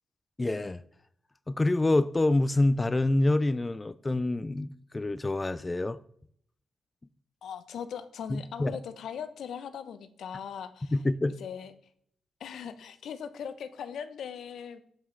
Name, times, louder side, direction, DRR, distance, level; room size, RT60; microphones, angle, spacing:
voice 1, 0.4-0.8 1.5-6.0 8.3-8.7 10.9-11.4, left 2 dB, 25° left, 0.3 m, -26 dB
voice 2, 7.4-10.9 11.4-11.7 12.4-14.8, left 8 dB, 75° left, 0.6 m, -39 dB
7.2 x 5.6 x 3.8 m
supercardioid pair, 60°, 0 cm